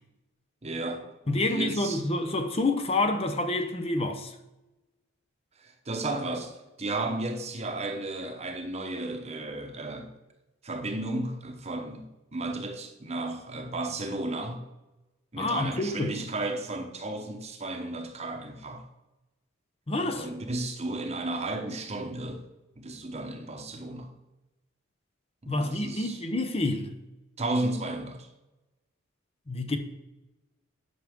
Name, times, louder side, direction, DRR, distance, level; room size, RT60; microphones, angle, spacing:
voice 1, 0.6-2.0 5.6-10.1 10.6-12.1 12.3-14.6 15.3-18.8 20.0-22.4 22.8-24.1 25.4-26.2 27.4-28.3, right 2 dB, 35° right, 0.9 m, -34 dB
voice 2, 1.3-4.3 15.4-16.3 19.9-20.3 25.5-26.9 29.5-29.8, left 2 dB, 30° left, 0.7 m, -28 dB
11.0 x 6.0 x 3.6 m
head